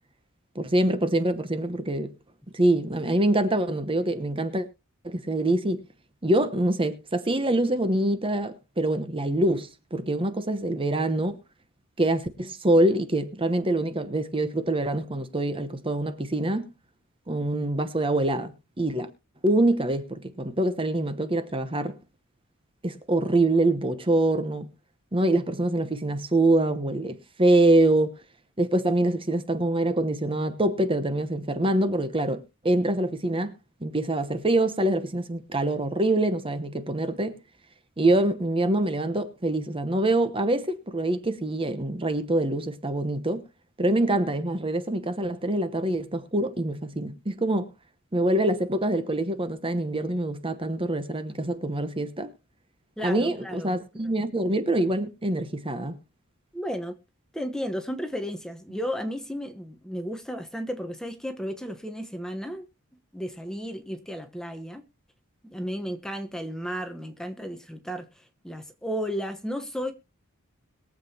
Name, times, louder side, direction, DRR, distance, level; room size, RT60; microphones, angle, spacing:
voice 1, 0.5-2.1 2.5-4.6 5.0-5.8 6.2-11.4 12.0-16.7 17.3-19.1 19.4-22.0 22.8-24.7 25.1-28.2 28.6-33.5 33.8-37.4 38.0-43.4 43.8-47.7 48.1-52.3 53.0-56.0, right 1 dB, 25° right, 1.0 m, -25 dB
voice 2, 53.0-53.7 56.5-57.0 57.3-62.6 63.1-64.8 65.4-69.9, equal, 5° left, 1.0 m, -33 dB
22.0 x 7.6 x 2.8 m
head